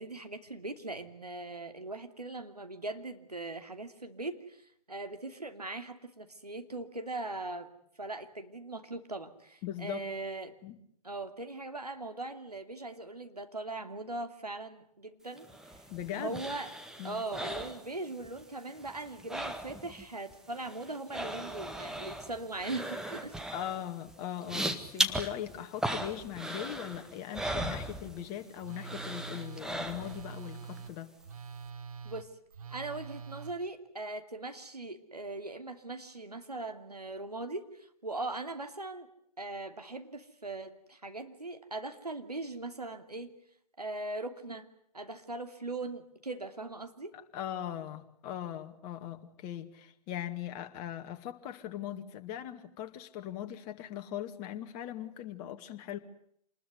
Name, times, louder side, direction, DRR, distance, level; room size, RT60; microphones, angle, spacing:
voice 1, 0.0-7.7 8.0-10.5 11.0-15.5 16.1-16.7 17.0-23.4 32.0-32.3 32.7-39.1 39.4-43.3 43.8-44.7 44.9-47.1, right 2 dB, 85° right, 7 dB, 2.8 m, -40 dB
voice 2, 9.6-10.1 10.6-10.8 15.9-16.4 17.0-17.2 23.5-31.1 47.3-56.0, left 11 dB, 30° left, 6 dB, 2.2 m, -40 dB
sound 1, 15.4-18.4 18.7-20.1 20.3-28.5 28.8-30.4 30.8-30.9, right 1 dB, 5° right, 1.7 m, -37 dB
Telephone, 28.6-33.5, right 6 dB, 65° right, 1.5 m, -45 dB
27.5 x 20.5 x 9.5 m, 0.69 s
figure-of-eight pair, 120°, 20 cm